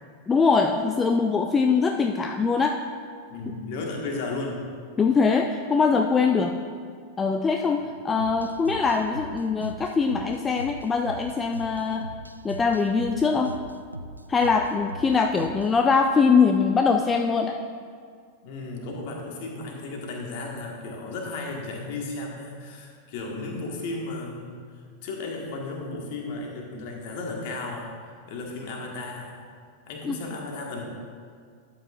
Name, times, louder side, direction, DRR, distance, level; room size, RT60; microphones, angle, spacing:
voice 1, 0.3-2.8 5.0-6.6 7.2-12.1 12.4-13.5 14.3-17.6 30.1-30.2, left 5 dB, 20° left, 4 dB, 0.4 m, -22 dB
voice 2, 3.3-4.6 7.8-7.9 18.4-29.4 29.9-30.8, left 3 dB, 50° left, 0 dB, 1.6 m, -34 dB
sound 1, 8.2-15.8, right 1 dB, 85° right, 0.3 m, -40 dB
12.5 x 8.1 x 2.5 m, 2.1 s
figure-of-eight pair, 90°, 0 cm